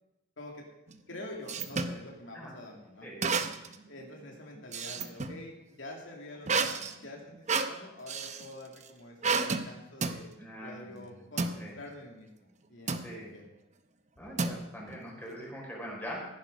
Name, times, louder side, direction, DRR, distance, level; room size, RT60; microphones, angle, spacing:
voice 1, 0.4-0.7 1.1-3.1 3.9-10.4 10.6-13.5, left 1 dB, 75° left, 0 dB, 2.6 m, -47 dB
sound 1, 0.9-2.0 3.2-3.8 4.2-5.4 6.5-8.5 9.2-9.7 10.0-10.2 11.4-11.6 12.9-13.1 14.4-15.0, right 4 dB, 40° right, 0.8 m, -31 dB
voice 2, 10.4-11.2 11.6-11.8 13.0-13.3 14.2-16.3, equal, 10° left, -3 dB, 4.7 m, -42 dB
15.0 x 11.0 x 5.2 m, 0.91 s
head